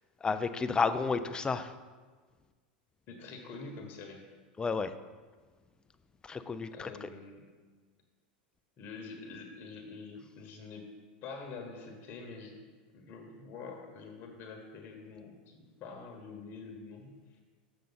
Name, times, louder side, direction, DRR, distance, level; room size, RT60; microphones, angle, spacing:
voice 1, 0.2-1.7 4.6-4.9 6.2-7.1, left 4 dB, 15° left, 11 dB, 0.4 m, -31 dB
voice 2, 3.1-4.2 6.7-7.4 8.8-10.9 11.2-17.4, left 4 dB, 45° left, 3 dB, 1.1 m, -46 dB
6.8 x 6.4 x 4.0 m, 1.4 s
hypercardioid pair, 100°, 5 cm